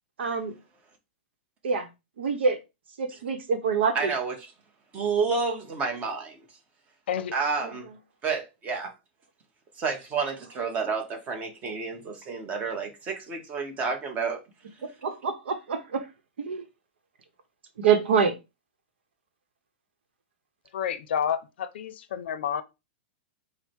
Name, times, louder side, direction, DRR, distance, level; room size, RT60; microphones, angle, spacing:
voice 1, 0.2-0.5 1.6-1.9 2.2-2.6 3.0-4.1 7.6-7.7 15.0-16.1 16.4-16.6 17.8-18.4, right 6 dB, 90° right, 0.9 m, -25 dB
voice 2, 3.9-4.5 4.9-6.4 7.3-7.9 8.2-8.9 9.8-14.4, right 5 dB, 25° right, 1.0 m, -30 dB
voice 3, 20.7-22.6, left 8 dB, 75° left, 0.6 m, -29 dB
4.6 x 2.1 x 4.3 m
supercardioid pair, 150°, 6 cm